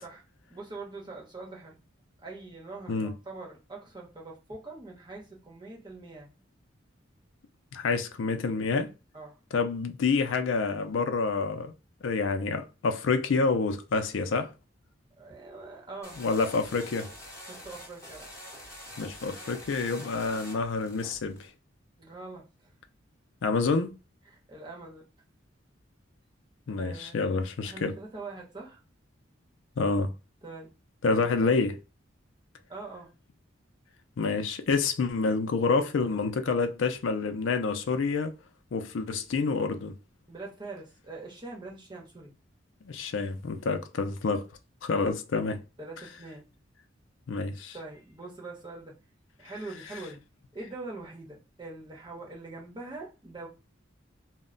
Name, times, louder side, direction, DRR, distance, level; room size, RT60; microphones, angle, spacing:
voice 1, 0.5-1.8 2.2-6.3 9.1-9.4 15.2-16.2 17.5-18.3 22.0-22.7 24.3-25.0 26.8-27.2 27.6-28.8 30.4-30.7 31.0-31.6 32.7-33.1 40.3-42.3 45.8-46.5 47.7-48.9 49.4-50.2 50.5-53.5, right 3 dB, 25° right, 0.9 m, -43 dB
voice 2, 7.7-8.9 9.5-11.7 12.0-14.5 16.2-17.1 19.0-21.5 23.4-23.9 26.7-27.9 29.8-30.1 31.0-31.8 34.2-38.3 38.7-39.9 42.9-44.5 44.8-45.6 47.3-47.8, left 4 dB, 75° left, 0.4 m, -28 dB
sound 1, 16.0-21.5, left 1 dB, 15° left, 0.9 m, -46 dB
2.1 x 2.1 x 3.7 m
head